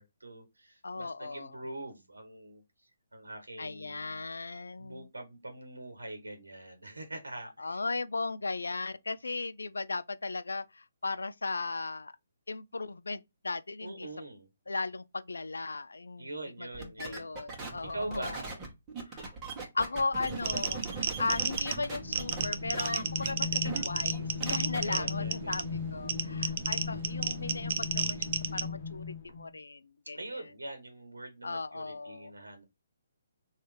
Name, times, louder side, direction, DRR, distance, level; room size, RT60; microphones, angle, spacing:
voice 1, 0.0-4.2 4.8-7.8 13.8-14.5 16.2-17.4 17.9-18.5 24.8-25.6 30.1-32.6, right 2 dB, 90° right, 1.0 m, -43 dB
voice 2, 0.8-1.6 3.6-5.1 7.6-12.1 12.5-14.1 14.7-16.3 16.6-18.4 19.1-19.3 19.7-30.4 31.4-32.3, left 3 dB, 85° left, 0.3 m, -37 dB
sound 1, 16.7-22.5 22.7-23.3 23.6-23.8 24.1-24.8, right 3 dB, 20° right, 1.5 m, -39 dB
sound 2, 20.5-28.7, right 8 dB, 45° right, 0.5 m, -33 dB
sound 3, 21.8-29.5, left 5 dB, 50° left, 1.0 m, -38 dB
3.2 x 2.7 x 3.2 m
figure-of-eight pair, 140°, 0 cm